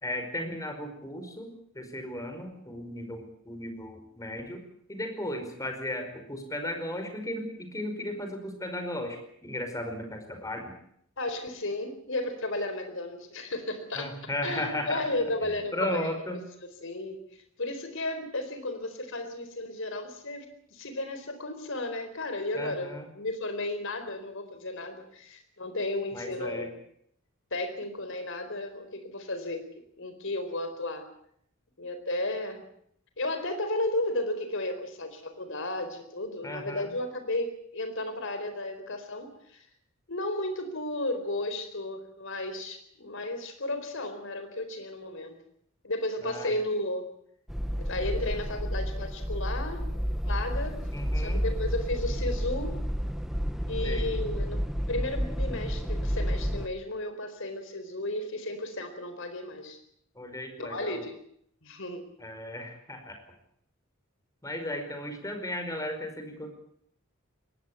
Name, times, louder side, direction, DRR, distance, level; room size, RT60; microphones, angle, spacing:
voice 1, 0.0-4.6 4.9-10.8 14.0-15.0 15.4-16.4 22.5-23.1 26.1-26.7 36.4-36.9 46.2-46.5 50.9-51.4 53.8-54.1 60.2-61.0 62.2-63.2 64.4-66.5, left 1 dB, 15° left, 6 dB, 5.1 m, -35 dB
voice 2, 11.2-14.1 14.4-17.2 17.6-26.7 27.5-29.7 30.0-31.1 31.8-32.6 33.2-39.6 40.1-45.4 45.8-47.1 47.8-49.9 50.3-50.8 51.1-52.8 53.7-59.8 60.6-61.2 61.6-62.0, left 2 dB, 65° left, 8 dB, 4.3 m, -34 dB
sound 1, 47.5-56.7, equal, ahead, 1.0 m, -30 dB
22.0 x 18.0 x 8.4 m, 0.69 s
head